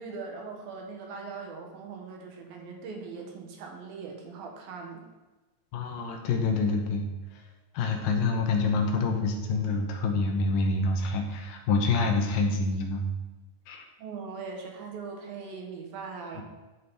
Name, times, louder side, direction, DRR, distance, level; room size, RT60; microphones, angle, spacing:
voice 1, 0.0-5.1 14.0-16.4, right 4 dB, 75° right, 2 dB, 3.2 m, -40 dB
voice 2, 5.7-7.0 7.7-13.0 13.7-13.8 16.4-16.5, left 3 dB, 75° left, 3 dB, 2.6 m, -27 dB
12.5 x 6.3 x 4.2 m, 1.2 s
omnidirectional pair, 4.2 m